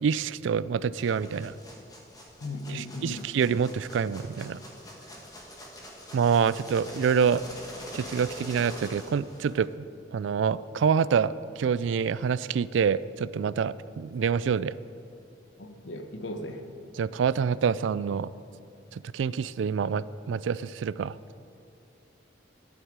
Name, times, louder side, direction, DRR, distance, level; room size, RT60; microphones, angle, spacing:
voice 1, 0.0-1.5 2.7-4.6 6.1-7.4 7.9-9.9 10.1-14.8 17.0-18.3 18.9-21.1, right 6 dB, 85° right, 18 dB, 0.3 m, -26 dB
sound 1, 0.9-9.7, equal, 20° left, 1.5 m, -45 dB
voice 2, 2.4-3.2 15.6-16.6, left 1 dB, 80° left, 6 dB, 1.0 m, -37 dB
13.0 x 11.0 x 4.7 m, 2.7 s
head